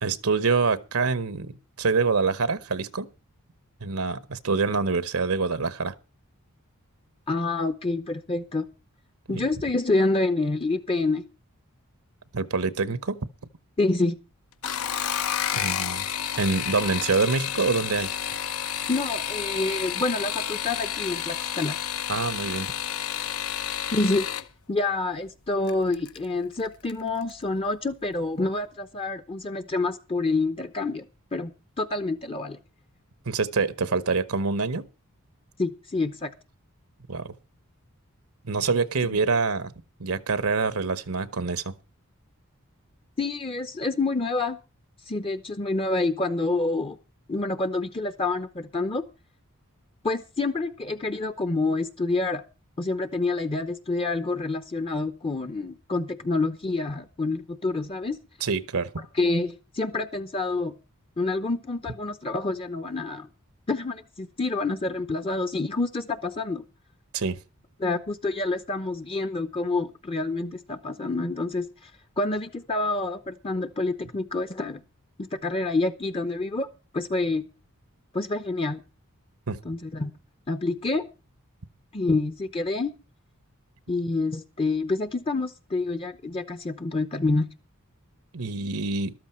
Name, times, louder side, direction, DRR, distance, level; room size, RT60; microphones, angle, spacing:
voice 1, 0.0-3.1 3.8-5.9 9.3-9.4 12.3-13.3 15.5-16.1 16.4-18.1 22.1-22.7 23.5-23.6 33.3-34.9 37.1-37.3 38.4-39.7 40.0-41.7 58.4-58.9 67.1-67.4 79.5-79.6 88.3-89.1, right 4 dB, 75° right, 0.9 m, -26 dB
voice 2, 7.3-8.7 9.3-11.2 13.8-14.2 18.9-21.8 23.9-24.3 24.7-31.0 31.3-32.6 35.6-36.3 43.2-44.6 45.1-47.0 47.3-49.0 50.0-52.4 52.8-58.2 59.1-60.7 61.2-63.3 63.7-66.6 67.8-71.9 72.2-74.8 75.2-76.7 76.9-77.4 78.1-78.8 79.6-80.1 80.5-81.1 81.9-82.9 83.9-87.5, left 3 dB, 25° left, 0.7 m, -27 dB
sound 1, 14.5-24.5 25.7-26.2 26.6-27.0 27.3-27.4, left 9 dB, 70° left, 0.9 m, -30 dB
13.5 x 12.5 x 4.4 m
head